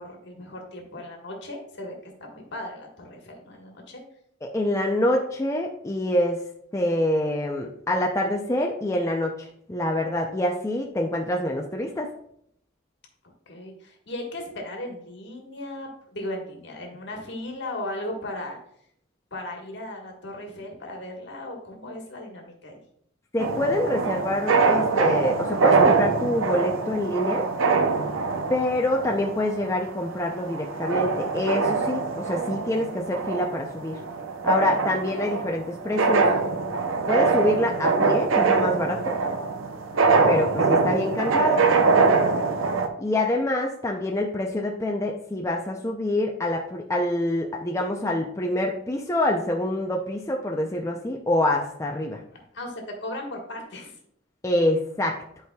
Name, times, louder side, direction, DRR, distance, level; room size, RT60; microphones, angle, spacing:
voice 1, 0.0-4.0 13.5-18.6 19.3-22.8 52.5-53.9, left 1 dB, 60° left, 1 dB, 1.5 m, -37 dB
voice 2, 4.4-6.4 6.7-12.1 23.3-27.5 28.5-34.0 34.4-36.3 37.1-39.2 40.3-41.7 43.0-52.2 54.4-55.2, left 1 dB, 15° left, 0 dB, 0.5 m, -26 dB
sound 1, 23.4-42.9, right 4 dB, 90° right, 0.7 m, -23 dB
10.5 x 4.8 x 2.3 m, 0.69 s
head